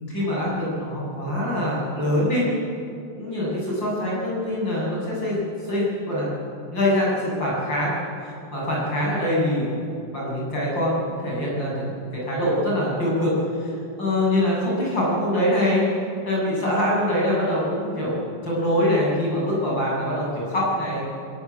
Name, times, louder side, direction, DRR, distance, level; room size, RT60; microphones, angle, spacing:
voice 1, 0.0-2.4 3.2-5.4 5.7-6.3 6.7-7.9 8.5-13.3 13.6-13.7 14.0-15.8 16.2-21.0, left 1 dB, 30° left, -5 dB, 8.5 m, -24 dB
29.0 x 16.5 x 8.4 m, 2.6 s
omnidirectional pair, 4.1 m